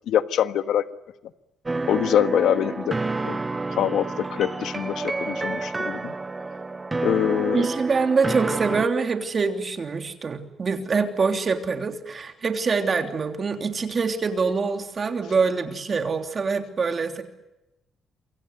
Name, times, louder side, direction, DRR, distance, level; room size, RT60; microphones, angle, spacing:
voice 1, 0.1-0.8 1.9-3.0 3.2-3.4 3.7-6.1 7.0-7.7, left 10 dB, 75° left, 11 dB, 1.4 m, -24 dB
sound 1, 1.7-8.9, right 3 dB, 15° right, 1.0 m, -29 dB
voice 2, 7.5-17.2, right 4 dB, 35° right, 6 dB, 3.2 m, -25 dB
28.0 x 25.0 x 8.2 m, 0.94 s
cardioid pair, 140°, 0 cm